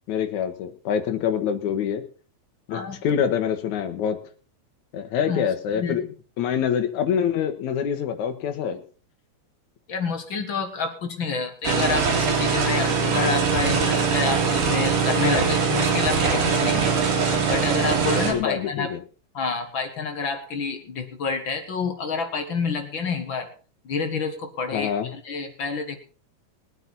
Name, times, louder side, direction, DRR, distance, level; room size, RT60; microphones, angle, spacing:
voice 1, 0.1-2.0 2.7-4.2 4.9-6.0 6.4-8.8 18.3-19.0 24.7-25.1, left 8 dB, 70° left, 6 dB, 2.7 m, -25 dB
voice 2, 2.7-3.0 5.2-5.4 5.7-6.1 9.9-18.9 19.3-23.5 23.8-26.0, left 4 dB, 45° left, 6 dB, 1.9 m, -28 dB
sound 1, 11.6-18.3, right 5 dB, 90° right, 4.0 m, -22 dB
21.0 x 9.2 x 4.1 m, 0.37 s
omnidirectional pair, 3.5 m